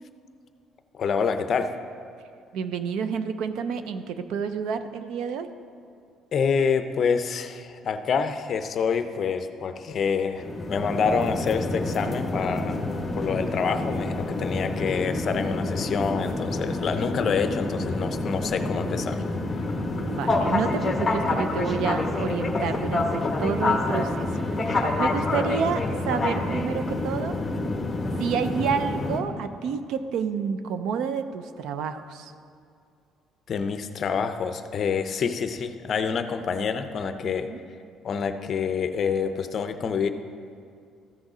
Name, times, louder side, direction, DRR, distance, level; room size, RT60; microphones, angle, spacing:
voice 1, 0.9-1.7 6.3-12.8 13.1-19.2 33.5-37.5 38.0-40.1, left 6 dB, 40° left, 9 dB, 0.6 m, -27 dB
voice 2, 2.5-5.5 19.9-24.3 24.6-27.4 28.2-32.3 37.2-37.6, right 6 dB, 75° right, 10 dB, 0.5 m, -29 dB
sound 1, 10.4-29.2, left 2 dB, 15° left, 1.0 m, -27 dB
14.0 x 6.5 x 4.9 m, 2.4 s
cardioid pair, 145°, 0 cm